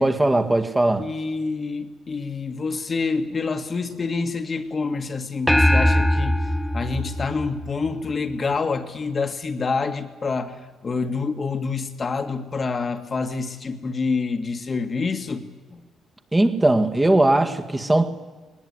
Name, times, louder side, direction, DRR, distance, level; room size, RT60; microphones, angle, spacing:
voice 1, 0.0-1.1 16.3-18.1, right 2 dB, 15° right, 2.0 m, -19 dB
voice 2, 1.0-6.4 6.7-15.8, left 4 dB, 40° left, 2.0 m, -27 dB
sound 1, 5.5-8.1, equal, ahead, 1.0 m, -21 dB
19.5 x 19.5 x 9.7 m
cardioid pair, 90°, 0 cm